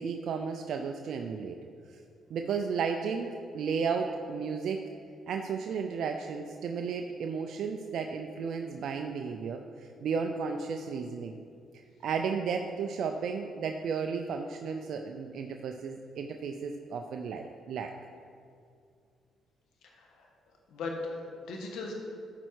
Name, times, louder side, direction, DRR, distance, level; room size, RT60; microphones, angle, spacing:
voice 1, 0.0-1.6 2.3-3.3 3.5-4.8 5.3-11.4 12.0-17.9, right 5 dB, 70° right, 4 dB, 0.5 m, -33 dB
voice 2, 19.8-20.3 20.7-21.9, left 3 dB, 85° left, 0 dB, 1.4 m, -38 dB
12.5 x 4.5 x 4.7 m, 2.3 s
cardioid pair, 90°, 0 cm